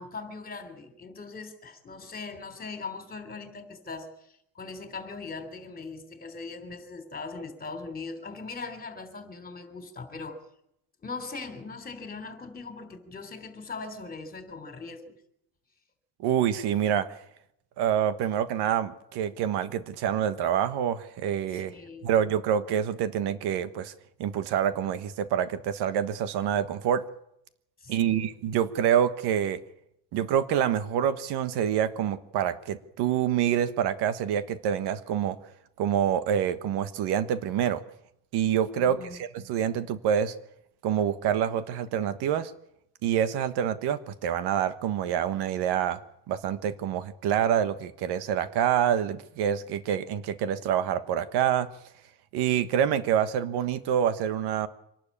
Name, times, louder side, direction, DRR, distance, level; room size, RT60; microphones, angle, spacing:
voice 1, 0.0-10.4 11.0-15.2 21.5-22.1 27.8-28.3 38.8-39.2, left 4 dB, 20° left, 3.4 m, -40 dB
voice 2, 16.2-17.2 17.8-21.7 22.0-23.9 24.2-27.0 27.9-29.6 30.1-35.4 35.8-37.8 38.3-40.3 40.8-42.5 43.0-46.0 46.3-51.7 52.3-54.7, right 9 dB, 70° right, 1.4 m, -26 dB
25.0 x 12.0 x 8.6 m
cardioid pair, 135°, 41 cm